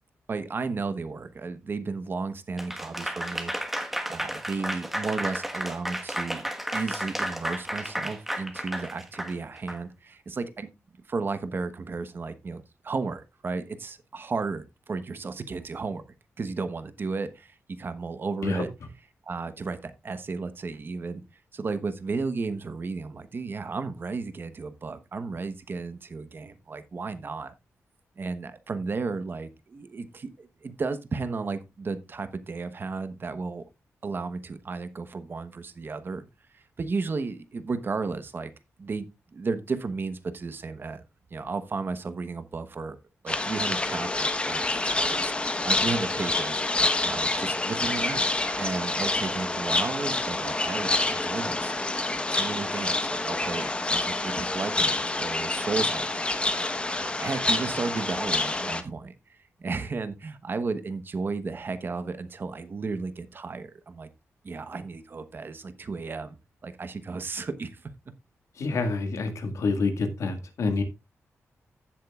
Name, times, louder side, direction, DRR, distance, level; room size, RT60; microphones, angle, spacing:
voice 1, 0.3-6.4 6.7-10.7 11.1-16.0 16.4-18.7 19.2-21.2 21.5-27.5 28.2-33.6 34.0-36.2 36.5-38.5 38.8-39.1 39.3-41.0 41.3-43.0 43.2-46.6 47.0-48.3 48.6-56.5 57.0-64.1 64.4-66.4 66.6-67.9, right 4 dB, 45° right, 1.1 m, -34 dB
Applause / Crowd, 2.6-9.8, equal, 5° right, 1.4 m, -32 dB
sound 1, 43.3-58.8, left 2 dB, 20° left, 1.2 m, -27 dB
voice 2, 68.6-70.8, left 3 dB, 80° left, 2.0 m, -27 dB
15.0 x 7.5 x 2.4 m
wide cardioid pair, 120°, 5 cm